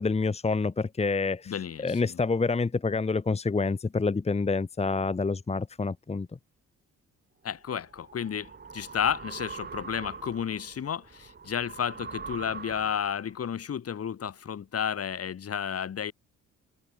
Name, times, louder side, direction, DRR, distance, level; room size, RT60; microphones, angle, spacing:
voice 1, 0.0-1.5 1.8-6.3, left 4 dB, 20° left, 1.2 m, -27 dB
voice 2, 1.5-2.2 7.4-16.1, left 8 dB, 50° left, 3.7 m, -32 dB
sound 1, 7.6-13.4, right 5 dB, 35° right, 2.4 m, -43 dB
cardioid pair, 90°, 30 cm